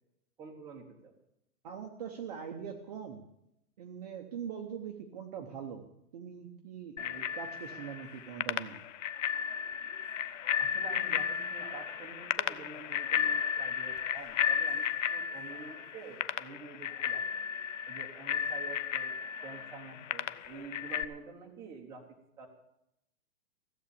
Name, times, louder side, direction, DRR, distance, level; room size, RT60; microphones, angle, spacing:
voice 1, 0.4-1.1 10.6-17.2 17.9-22.5, right 4 dB, 5° right, -1 dB, 1.0 m, -48 dB
voice 2, 1.6-3.2 3.8-5.9 6.1-8.8, right 7 dB, 25° right, 4 dB, 0.8 m, -42 dB
Bicycle bell, 7.0-21.0, left 8 dB, 55° left, 0.7 m, -34 dB
15.5 x 7.9 x 8.4 m, 0.80 s
hypercardioid pair, 170°, 46 cm